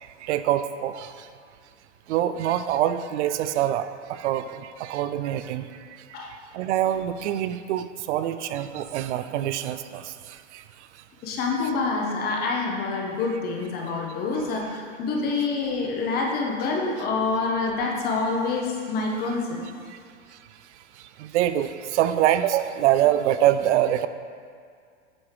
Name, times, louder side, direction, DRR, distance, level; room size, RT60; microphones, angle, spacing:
voice 1, 0.2-1.1 2.1-5.7 6.5-10.1 10.5-10.6 21.2-24.1, right 12 dB, 70° right, 11 dB, 0.5 m, -24 dB
voice 2, 11.2-19.6, left 3 dB, 25° left, 0 dB, 0.8 m, -27 dB
8.5 x 3.0 x 4.8 m, 2.2 s
supercardioid pair, 145°, 37 cm